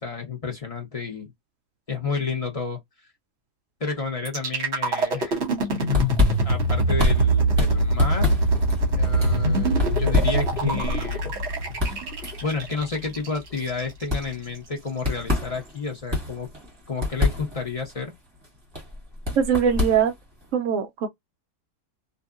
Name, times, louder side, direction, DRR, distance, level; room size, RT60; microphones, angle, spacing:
voice 1, 0.0-1.3 1.9-2.8 3.8-5.4 6.4-8.3 8.9-11.3 12.4-16.5 16.9-18.2, left 4 dB, 45° left, 0.4 m, -31 dB
sound 1, 4.3-14.2, right 1 dB, 45° right, 1.2 m, -23 dB
sound 2, 5.6-20.5, left 2 dB, 15° right, 1.3 m, -28 dB
voice 2, 19.4-20.1 20.5-21.1, right 7 dB, 65° right, 0.8 m, -21 dB
2.8 x 2.6 x 2.4 m
omnidirectional pair, 1.8 m